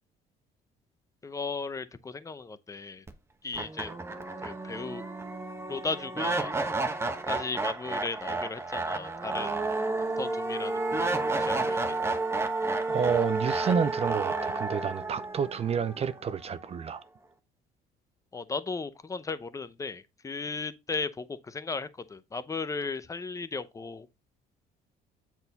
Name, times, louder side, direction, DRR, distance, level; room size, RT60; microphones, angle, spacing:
voice 1, 1.2-3.0 3.4-3.9 4.4-5.0 5.7-6.6 7.3-9.6 10.2-11.8 18.3-24.1, left 4 dB, 20° left, 0.7 m, -36 dB
sound 1, 3.1-3.2 3.5-16.6, right 3 dB, 15° right, 1.1 m, -31 dB
voice 2, 12.9-17.0, right 7 dB, 35° right, 0.6 m, -29 dB
7.8 x 4.5 x 4.0 m
cardioid pair, 110°, 17 cm